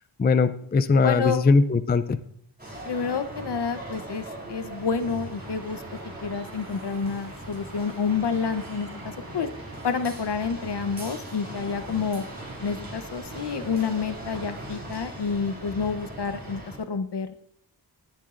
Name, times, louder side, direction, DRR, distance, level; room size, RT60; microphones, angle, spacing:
voice 1, 0.2-2.2, left 4 dB, 25° left, 11 dB, 0.4 m, -20 dB
voice 2, 1.0-1.4 2.8-5.8 6.2-9.5 9.8-12.2 12.6-16.6 16.9-17.4, left 5 dB, 65° left, 9 dB, 0.9 m, -29 dB
sound 1, 2.6-16.8, right 1 dB, 20° right, 3.6 m, -40 dB
sound 2, 5.4-14.8, right 2 dB, 40° right, 3.1 m, -46 dB
19.0 x 7.3 x 2.5 m, 0.71 s
wide cardioid pair, 115°, 44 cm